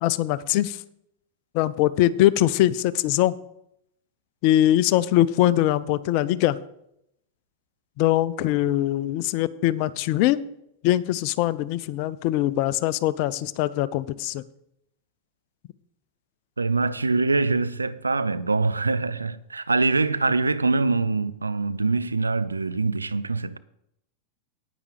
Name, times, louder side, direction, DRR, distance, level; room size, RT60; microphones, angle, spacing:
voice 1, 0.0-0.8 1.5-3.4 4.4-6.6 8.0-10.4 10.8-14.4, left 14 dB, 45° left, 0.5 m, -22 dB
voice 2, 16.6-23.6, right 3 dB, 80° right, 0.5 m, -24 dB
9.9 x 9.1 x 5.0 m
figure-of-eight pair, 90°, 0 cm